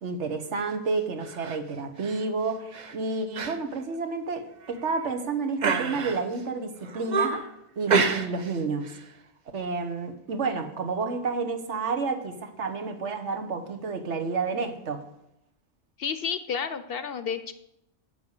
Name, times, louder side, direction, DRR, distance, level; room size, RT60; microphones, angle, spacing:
voice 1, 0.0-7.4 7.8-8.9 9.5-15.0, right 4 dB, 85° right, 7 dB, 1.4 m, -30 dB
sound 1, 1.2-1.6 2.0-2.2 2.7-2.9 3.3-3.6 3.9-4.0 4.6-5.1 5.6-6.4 6.8-7.5 7.9-8.6 8.8-9.1, right 4 dB, 45° right, 0.9 m, -28 dB
voice 2, 16.0-17.5, left 7 dB, 60° left, 11 dB, 0.8 m, -31 dB
8.4 x 7.9 x 6.6 m, 0.82 s
omnidirectional pair, 1.2 m